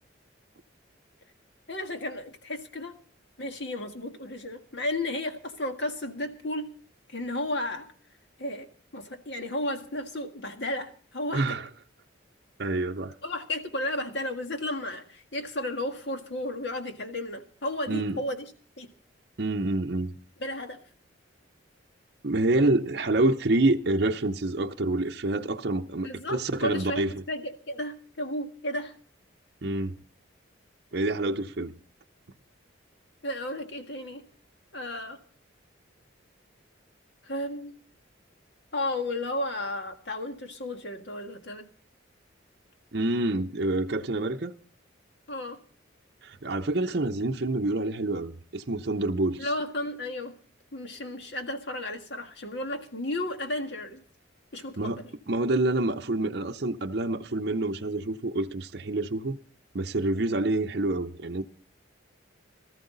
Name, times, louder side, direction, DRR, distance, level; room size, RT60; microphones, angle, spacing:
voice 1, 1.7-2.9 3.4-6.7 7.1-7.9 8.4-11.6 13.2-18.5 18.8-18.9 20.4-20.8 26.0-28.9 33.2-34.2 34.7-35.2 37.2-37.7 38.7-41.7 45.3-45.6 49.4-50.3 50.7-54.0 54.5-55.1, left 1 dB, 60° left, 1.8 m, -33 dB
voice 2, 11.3-11.7 12.6-13.1 17.9-18.2 19.4-20.1 22.2-27.1 29.6-30.0 30.9-31.7 42.9-44.5 46.2-49.5 54.8-55.0 55.3-59.4 59.7-61.4, right 2 dB, 55° right, 0.7 m, -27 dB
18.5 x 13.5 x 3.9 m
head